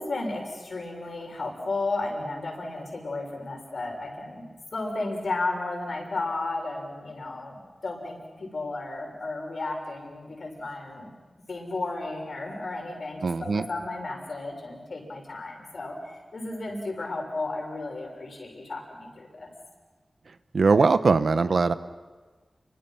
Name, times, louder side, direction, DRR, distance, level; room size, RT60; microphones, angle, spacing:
voice 1, 0.0-4.4 4.7-11.1 11.5-19.5, left 2 dB, 70° left, 1 dB, 6.4 m, -33 dB
voice 2, 13.2-13.6 20.5-21.7, right 4 dB, 75° right, 11 dB, 1.0 m, -21 dB
29.5 x 24.5 x 6.0 m, 1.3 s
wide cardioid pair, 90°, 0 cm